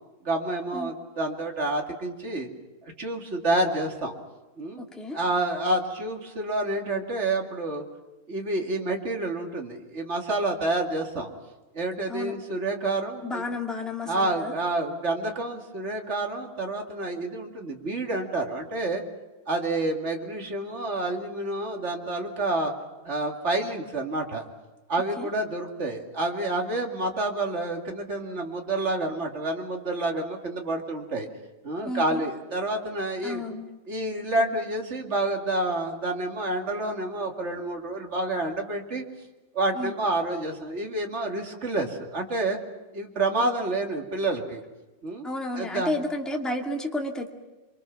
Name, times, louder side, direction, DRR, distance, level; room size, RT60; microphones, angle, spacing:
voice 1, 0.2-2.5 2.8-4.1 4.6-4.8 5.1-7.8 8.3-11.3 11.7-13.4 14.0-19.0 19.5-22.7 23.0-24.4 24.9-31.3 31.6-33.4 33.9-39.0 39.5-42.6 42.9-44.6 45.0-45.3 45.5-45.9, right 2 dB, 25° right, 1 dB, 1.8 m, -28 dB
voice 2, 4.8-5.2 12.1-12.3 13.2-14.5 25.2-25.3 31.8-32.2 33.2-33.8 39.7-39.9 43.4-43.5 45.2-47.3, left 2 dB, ahead, 0 dB, 0.8 m, -32 dB
28.5 x 24.0 x 6.0 m, 1.1 s
omnidirectional pair, 4.4 m